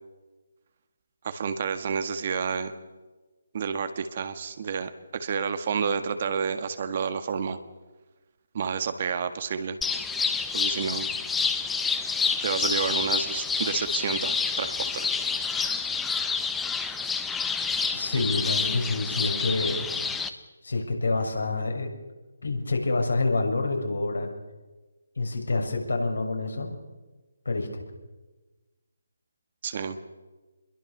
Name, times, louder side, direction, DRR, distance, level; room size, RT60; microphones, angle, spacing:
voice 1, 1.2-2.7 3.5-7.6 8.5-9.8 10.5-11.1 12.4-15.1 18.2-18.3 29.6-30.0, right 6 dB, 40° right, 9 dB, 1.7 m, -30 dB
sound 1, 9.8-20.3, left 5 dB, 5° left, 1.1 m, -28 dB
voice 2, 17.9-19.9 20.6-21.9 22.4-24.3 25.2-26.8 27.4-27.8, left 3 dB, 70° left, 2 dB, 6.5 m, -27 dB
27.0 x 22.0 x 6.7 m, 1.2 s
figure-of-eight pair, 145°, 0 cm